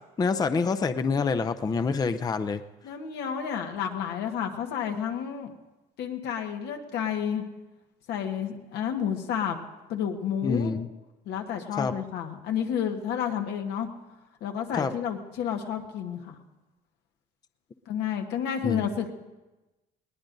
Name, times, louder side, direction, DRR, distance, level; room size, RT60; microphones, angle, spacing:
voice 1, 0.2-2.6 10.4-10.9 11.8-11.9 14.8-14.9 18.6-18.8, left 5 dB, 25° left, 10 dB, 0.5 m, -26 dB
voice 2, 2.8-5.5 6.0-7.4 8.1-9.6 9.9-10.8 11.2-13.9 14.4-16.4 17.9-19.1, left 8 dB, 85° left, 3 dB, 1.4 m, -30 dB
20.5 x 19.0 x 2.6 m, 1.1 s
cardioid pair, 110°, 17 cm